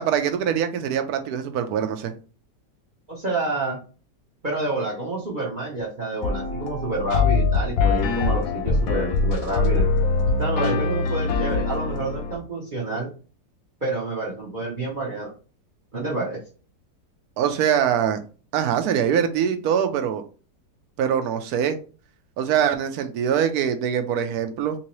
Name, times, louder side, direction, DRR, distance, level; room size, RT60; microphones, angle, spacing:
voice 1, 0.0-2.1 17.4-18.2 18.5-20.2 21.0-21.8 22.4-24.8, right 8 dB, 70° right, 7 dB, 1.0 m, -23 dB
voice 2, 3.1-3.8 4.4-9.9 10.4-13.1 13.8-15.3 15.9-16.4, right 2 dB, 40° right, -2 dB, 0.7 m, -28 dB
sound 1, 6.2-12.4, left 4 dB, 65° left, 0.9 m, -23 dB
3.7 x 2.8 x 3.0 m, 0.37 s
omnidirectional pair, 1.9 m